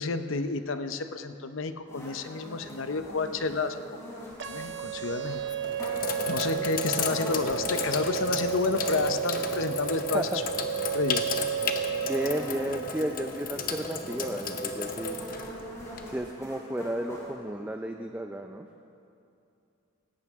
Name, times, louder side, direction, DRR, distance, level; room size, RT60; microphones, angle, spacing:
voice 1, 0.0-3.8 4.4-5.4 6.3-10.4 10.9-11.2, left 4 dB, 85° left, 9 dB, 0.7 m, -30 dB
sound 1, 1.9-17.3, equal, 15° left, 3.4 m, -44 dB
Sink (filling or washing), 4.3-4.7 5.4-16.3, left 4 dB, 45° left, 0.9 m, -34 dB
sound 2, 4.4-12.4, right 9 dB, 60° right, 0.8 m, -33 dB
voice 2, 12.0-15.2 16.0-18.7, right 1 dB, 10° right, 4 dB, 0.4 m, -33 dB
18.0 x 16.5 x 3.6 m, 2.7 s
head